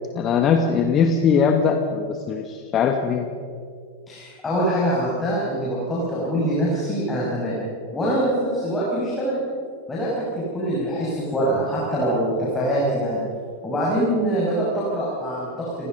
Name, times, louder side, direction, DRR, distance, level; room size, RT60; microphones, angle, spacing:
voice 1, 0.1-3.3, left 6 dB, 30° left, 5 dB, 1.6 m, -20 dB
voice 2, 4.1-7.6 7.9-9.4 9.9-10.1 10.4-13.2 13.6-15.9, right 1 dB, 15° left, -6 dB, 7.0 m, -24 dB
30.0 x 17.5 x 5.6 m, 2.3 s
figure-of-eight pair, 90°, 0 cm